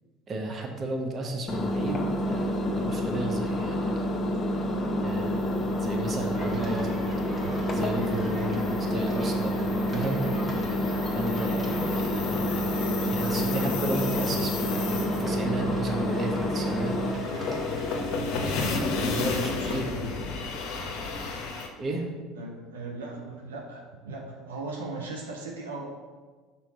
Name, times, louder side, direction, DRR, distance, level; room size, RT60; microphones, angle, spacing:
voice 1, 0.3-4.1 5.0-7.0 7.7-8.6 8.9-9.6 9.9-10.2 11.1-12.7 13.1-17.0 18.2-19.9 21.8-22.1, right 2 dB, 40° right, 2 dB, 1.0 m, -33 dB
Engine, 1.5-17.1, equal, 35° left, 0.9 m, -28 dB
sound 1, 5.2-21.7, left 4 dB, 60° left, 0.8 m, -34 dB
sound 2, 6.3-18.2, right 1 dB, 25° right, 1.5 m, -40 dB
voice 2, 18.8-20.3 22.3-25.8, right 3 dB, 85° right, -1 dB, 0.7 m, -39 dB
6.0 x 4.1 x 4.1 m, 1.4 s
hypercardioid pair, 65°, 0 cm